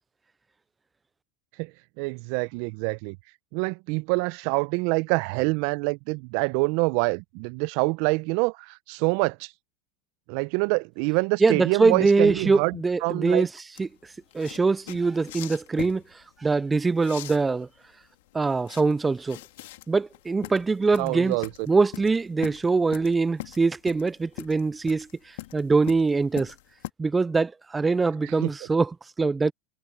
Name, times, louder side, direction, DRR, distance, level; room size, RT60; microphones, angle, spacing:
voice 1, 2.0-3.2 3.5-9.5 10.3-13.5 21.0-21.5 28.2-28.5, right 29 dB, 60° right, 0.8 m, -26 dB
voice 2, 11.4-17.7 18.3-19.4 19.9-21.4 21.7-26.5 27.0-29.5, right 4 dB, 15° right, 0.3 m, -23 dB
sound 1, 13.8-26.9, left 17 dB, 70° left, 2.8 m, -42 dB
hypercardioid pair, 95°, 0 cm